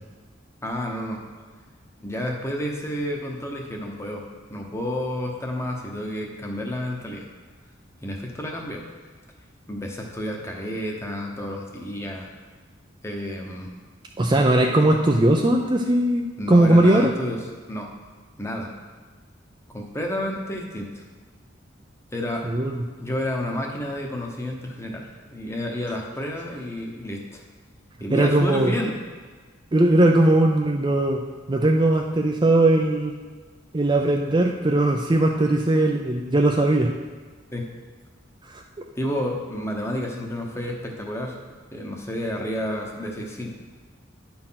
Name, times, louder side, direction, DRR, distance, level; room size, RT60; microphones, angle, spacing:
voice 1, 0.6-1.2 2.0-4.2 4.5-7.2 8.0-8.9 9.7-12.3 13.0-13.7 16.4-17.4 17.7-17.9 18.4-18.7 19.7-21.0 22.1-22.5 23.0-27.4 28.0-29.0 37.5-37.7 38.9-41.4 41.7-43.6, left 1 dB, 15° left, 0 dB, 1.0 m, -30 dB
voice 2, 14.2-17.1 22.4-22.8 28.1-28.7 29.7-31.2 31.5-33.1 33.7-36.9 38.5-38.6, right 1 dB, 25° right, 2 dB, 0.4 m, -19 dB
10.5 x 4.4 x 5.7 m, 1.4 s
head